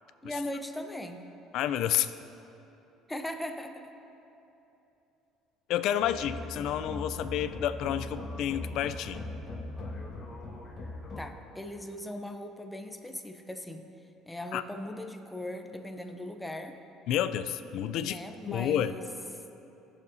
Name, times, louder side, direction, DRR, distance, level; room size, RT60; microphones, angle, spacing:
voice 1, 0.2-1.3 3.1-3.9 11.2-13.9 14.3-16.8 18.0-19.1, left 1 dB, 5° left, 5 dB, 0.6 m, -39 dB
voice 2, 1.5-2.1 5.7-9.2 14.5-14.6 17.1-18.2 18.5-18.9, left 10 dB, 60° left, 12 dB, 0.4 m, -29 dB
sound 1, 6.0-11.2, left 2 dB, 25° left, 1.5 m, -40 dB
18.5 x 6.9 x 2.7 m, 3.0 s
cardioid pair, 150°, 0 cm